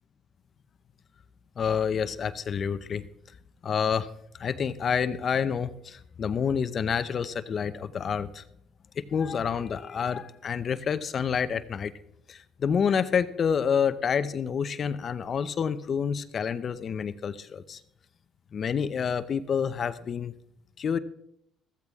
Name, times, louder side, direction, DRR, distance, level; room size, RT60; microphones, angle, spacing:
voice 1, 1.6-3.1 3.6-4.1 4.4-8.4 9.0-11.9 12.3-17.8 18.5-20.3 20.8-21.0, left 7 dB, 45° left, 13 dB, 0.7 m, -28 dB
14.5 x 14.0 x 3.6 m, 0.75 s
cardioid pair, 110°, 0 cm